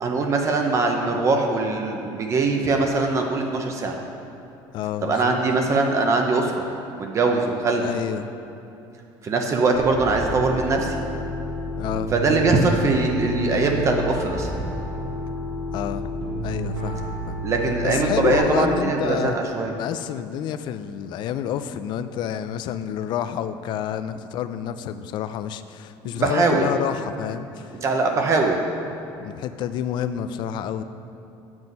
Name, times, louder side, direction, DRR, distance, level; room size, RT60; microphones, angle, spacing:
voice 1, 0.0-4.0 5.0-6.7 7.0-7.9 9.2-11.0 12.1-14.5 17.4-19.8 26.1-26.7 27.8-28.6, right 3 dB, 35° right, 2 dB, 0.7 m, -22 dB
voice 2, 4.7-5.4 7.8-8.3 11.8-12.1 15.7-16.1 16.4-17.4 17.8-19.4 19.8-27.8 29.2-30.8, left 9 dB, 55° left, 11 dB, 0.4 m, -29 dB
Piano, 9.7-18.4, equal, 90° right, 1.9 m, -30 dB
7.5 x 6.1 x 5.3 m, 2.8 s
cardioid pair, 130°, 9 cm